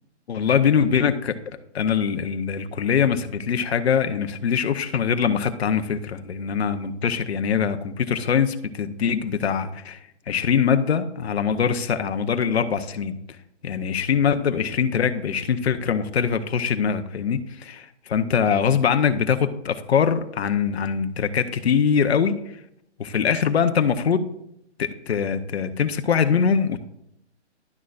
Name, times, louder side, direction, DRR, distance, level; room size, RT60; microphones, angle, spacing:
voice 1, 0.3-1.3 1.7-10.0 10.3-13.1 13.6-22.3 23.0-24.2 24.8-26.8, left 7 dB, 60° left, 9 dB, 0.8 m, -23 dB
11.0 x 6.4 x 2.5 m, 0.76 s
hypercardioid pair, 165°, 36 cm